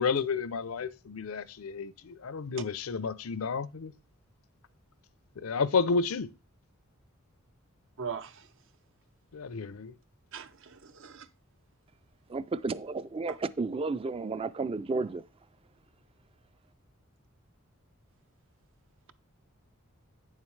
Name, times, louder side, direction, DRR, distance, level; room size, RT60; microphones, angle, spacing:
voice 1, 0.0-3.9 5.4-6.3 9.3-9.9, left 5 dB, 75° left, 0.5 m, -31 dB
voice 2, 8.0-8.3 10.3-11.3 13.3-13.4, right 6 dB, 65° right, 0.7 m, -40 dB
voice 3, 12.3-15.2, right 3 dB, 25° right, 0.4 m, -32 dB
8.8 x 7.3 x 3.2 m
head